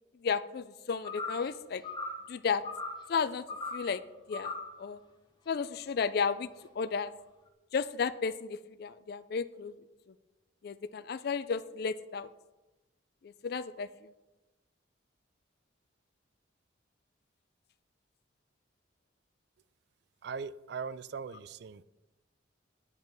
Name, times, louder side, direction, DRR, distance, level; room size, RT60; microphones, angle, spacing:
voice 1, 0.2-1.8 2.3-2.6 3.1-3.5 3.7-4.0 4.3-5.0 5.5-6.5 6.8-7.1 7.7-9.7 10.6-12.3 13.2-13.9, left 5 dB, 50° left, 13 dB, 0.3 m, -33 dB
sound 1, 1.0-1.5 1.8-2.3 2.6-3.0 3.5-3.9 4.3-4.8, left 3 dB, 20° left, 0.9 m, -38 dB
voice 2, 20.2-21.8, right 5 dB, 55° right, 17 dB, 0.3 m, -40 dB
9.0 x 5.2 x 6.0 m, 1.1 s
head